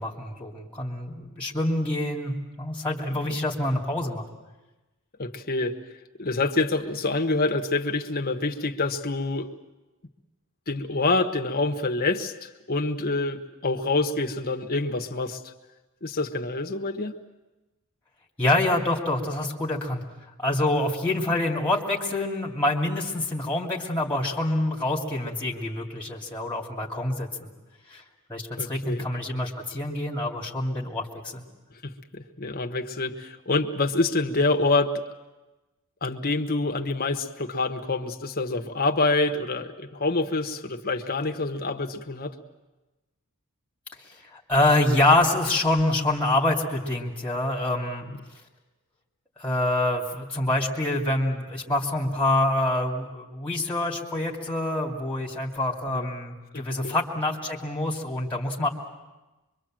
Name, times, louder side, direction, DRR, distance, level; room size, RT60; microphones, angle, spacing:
voice 1, 0.0-4.2 18.4-20.0 20.4-27.5 27.9-28.0 28.3-31.4 44.3-48.0 49.4-58.7, left 1 dB, 5° left, -1 dB, 2.6 m, -26 dB
voice 2, 5.2-5.8 6.2-9.5 10.7-15.5 16.0-17.2 28.6-29.1 31.8-35.0 36.0-42.3 48.0-48.2 55.9-56.1 56.5-56.9, left 3 dB, 45° left, 5 dB, 1.2 m, -27 dB
24.5 x 23.5 x 7.7 m, 1.1 s
head